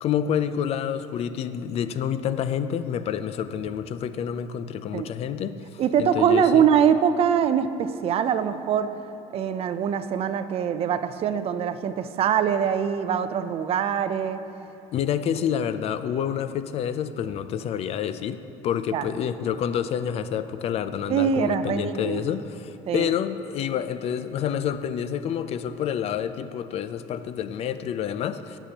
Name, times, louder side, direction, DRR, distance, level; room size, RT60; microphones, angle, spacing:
voice 1, 0.0-6.6 14.9-28.6, left 8 dB, 50° left, 12 dB, 0.4 m, -28 dB
voice 2, 5.8-8.9 9.3-14.4 18.9-19.1 21.1-22.2 22.9-23.1, right 8 dB, 45° right, 11 dB, 0.5 m, -23 dB
17.0 x 6.8 x 2.9 m, 2.8 s
cardioid pair, 120°, 14 cm